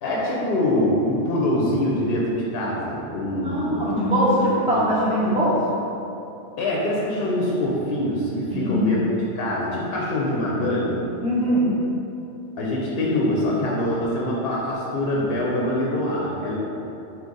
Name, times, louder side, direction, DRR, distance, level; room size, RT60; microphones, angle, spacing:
voice 1, 0.0-4.0 4.7-4.9 5.2-5.4 6.6-9.0 9.3-11.0 12.6-16.5, left 1 dB, 65° left, -4 dB, 0.8 m, -24 dB
voice 2, 3.4-5.6 8.5-8.9 11.2-11.8, equal, 10° right, -8 dB, 0.3 m, -21 dB
3.8 x 2.8 x 3.8 m, 2.9 s
omnidirectional pair, 1.2 m